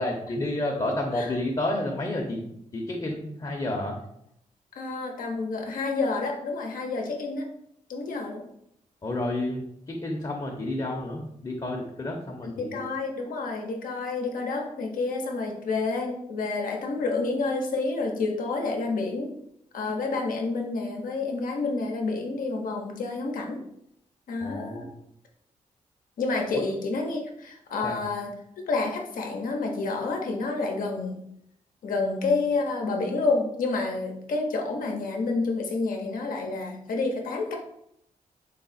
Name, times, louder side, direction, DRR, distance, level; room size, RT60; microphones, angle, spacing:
voice 1, 0.0-2.5 2.7-4.0 9.0-12.7 24.4-24.9 26.5-26.6 27.8-28.0, left 1 dB, 30° left, 0 dB, 0.7 m, -30 dB
voice 2, 4.8-7.5 7.9-8.4 12.4-19.3 19.7-23.6 24.3-24.8 26.2-28.3 28.7-31.2 31.8-37.6, left 3 dB, 80° left, 1 dB, 0.7 m, -29 dB
4.0 x 2.0 x 4.0 m, 0.73 s
cardioid pair, 70°, 14 cm